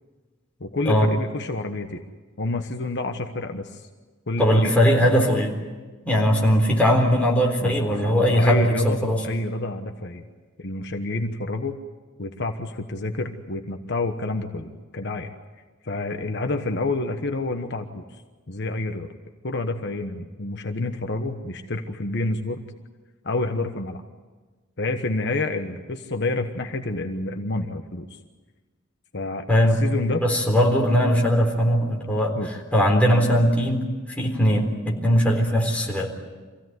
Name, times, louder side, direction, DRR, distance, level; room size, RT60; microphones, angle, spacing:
voice 1, 0.6-2.0 2.4-3.8 4.3-4.7 7.6-7.7 8.1-10.2 10.6-11.8 12.2-15.3 15.8-18.0 18.5-19.1 19.4-22.6 23.2-24.0 24.8-28.2 29.1-29.5 29.8-30.2 32.3-32.5, left 2 dB, 60° left, 5 dB, 1.3 m, -28 dB
voice 2, 4.4-5.6 6.1-9.2 29.5-29.8 30.2-33.9 34.2-36.1, equal, 5° left, -1 dB, 3.9 m, -20 dB
25.5 x 16.5 x 9.6 m, 1.3 s
head